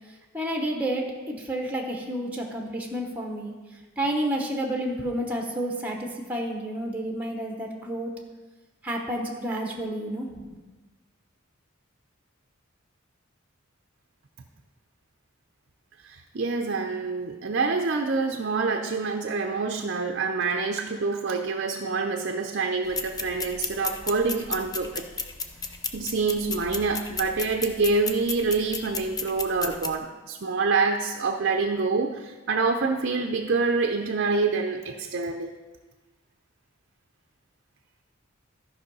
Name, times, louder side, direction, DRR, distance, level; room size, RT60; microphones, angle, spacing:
voice 1, 0.3-3.5 4.0-8.1 8.8-10.5, right 1 dB, 5° right, 1 dB, 1.1 m, -30 dB
voice 2, 16.0-25.1 25.9-35.5, right 4 dB, 55° right, 4 dB, 0.6 m, -26 dB
sound 1, 22.9-29.9, left 4 dB, 20° left, 0.6 m, -34 dB
13.0 x 5.6 x 5.4 m, 1.3 s
head